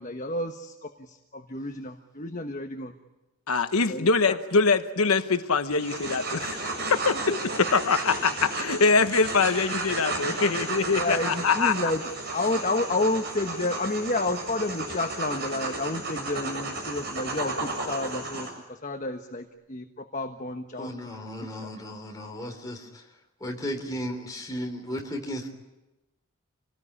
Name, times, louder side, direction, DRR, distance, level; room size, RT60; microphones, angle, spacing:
voice 1, 0.0-2.9 3.9-4.4 7.3-7.4 10.9-12.0 12.3-20.9 21.6-21.7, left 2 dB, 35° left, 1.2 m, -30 dB
voice 2, 3.5-6.6 6.9-7.2 7.7-11.7, left 4 dB, 80° left, 1.1 m, -23 dB
sound 1, 5.7-18.5, right 3 dB, 50° right, 8.0 m, -33 dB
voice 3, 20.8-22.9 23.4-25.5, equal, 15° left, 3.6 m, -35 dB
27.0 x 19.0 x 9.9 m
head